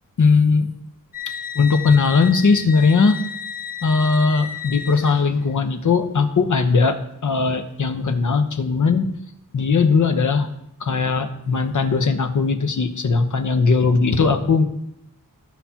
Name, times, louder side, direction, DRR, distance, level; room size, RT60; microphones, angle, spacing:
voice 1, 0.2-0.7 1.3-3.2 3.8-9.1 9.5-10.5 10.8-14.6, left 4 dB, 60° left, 7 dB, 1.0 m, -19 dB
sound 1, 1.1-5.6, left 7 dB, 25° left, 1.3 m, -33 dB
14.0 x 5.8 x 2.9 m, 0.78 s
wide cardioid pair, 95°, 34 cm